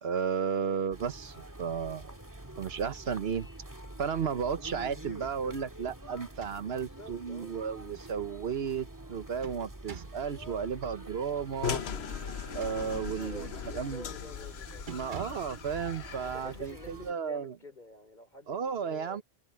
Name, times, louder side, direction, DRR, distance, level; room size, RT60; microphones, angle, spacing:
voice 1, 0.0-2.1 2.6-3.5 4.0-11.8 12.5-14.0 14.9-17.5 18.5-19.2, right 6 dB, 80° right, 1.2 m, -33 dB
sound 1, 0.9-17.1, right 1 dB, 20° right, 1.8 m, -46 dB
sound 2, 6.2-7.0 7.4-7.5 8.9-10.3 12.3-13.2 13.7-14.0 14.3-14.5 14.9-15.6, right 6 dB, 55° right, 1.1 m, -48 dB
voice 2, 6.6-7.6 12.8-14.9 16.2-19.2, left 2 dB, 50° left, 4.0 m, -50 dB
sound 3, 11.6-16.7, left 8 dB, 85° left, 1.1 m, -39 dB
open air
omnidirectional pair, 1.0 m